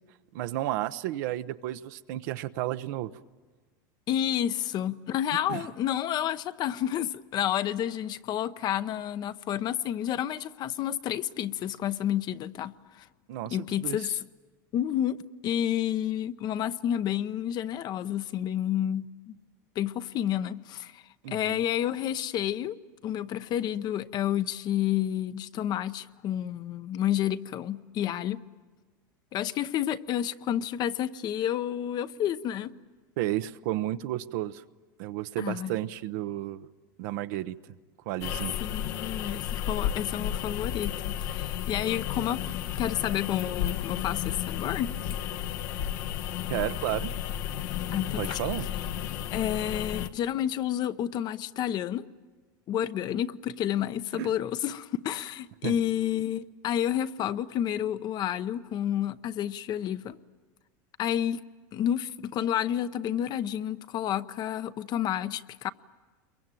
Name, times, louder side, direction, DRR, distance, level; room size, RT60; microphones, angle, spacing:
voice 1, 0.3-3.1 5.5-5.6 13.3-14.2 21.2-21.6 33.2-34.6 35.0-36.7 37.0-37.6 38.1-38.6 46.5-47.1 48.2-48.7 54.1-54.3 55.6-55.8, right 14 dB, 70° right, 0.9 m, -32 dB
voice 2, 4.1-13.1 13.5-14.1 14.7-15.2 15.4-19.4 19.8-21.0 21.3-22.8 23.0-28.4 29.3-32.7 35.4-35.7 38.6-42.5 42.8-45.0 47.9-48.4 49.3-52.1 52.7-60.2 61.0-61.4 61.7-65.7, left 11 dB, 40° left, 0.8 m, -30 dB
sound 1, 38.2-50.1, left 10 dB, 70° left, 1.1 m, -33 dB
28.5 x 23.0 x 9.1 m
supercardioid pair, 120°, 10 cm